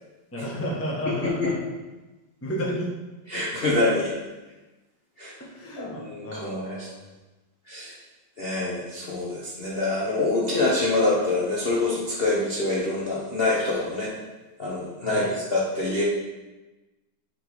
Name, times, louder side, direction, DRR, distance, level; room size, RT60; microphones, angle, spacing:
voice 1, 0.3-1.5 2.4-2.9 5.4-7.0 15.0-15.3, equal, 15° left, -3 dB, 0.6 m, -32 dB
voice 2, 1.1-1.5 3.3-4.1 5.2-5.3 5.8-6.9 7.7-7.9 8.4-14.1 14.6-15.2 15.5-16.0, left 2 dB, 55° left, -5 dB, 0.6 m, -25 dB
7.3 x 3.5 x 4.8 m, 1.1 s
omnidirectional pair, 2.4 m